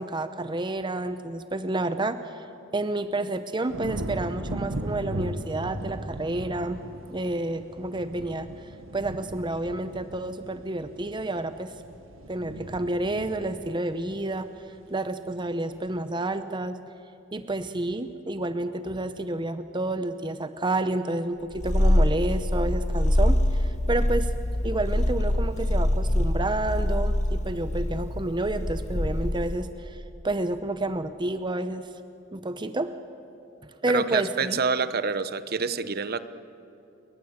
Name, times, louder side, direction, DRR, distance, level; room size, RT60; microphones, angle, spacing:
voice 1, 0.0-2.5 2.7-6.8 7.1-11.7 12.3-16.8 17.3-24.3 24.6-31.9 32.3-32.9 33.6-34.6, right 2 dB, 25° right, 10 dB, 0.8 m, -30 dB
sound 1, 3.7-15.0 15.4-15.9, right 1 dB, 85° right, 1.6 m, -38 dB
Purr, 21.5-29.6, left 1 dB, 35° left, 1.1 m, -24 dB
voice 2, 33.9-36.2, right 5 dB, 50° right, 13 dB, 1.0 m, -27 dB
28.5 x 23.5 x 8.0 m, 2.7 s
head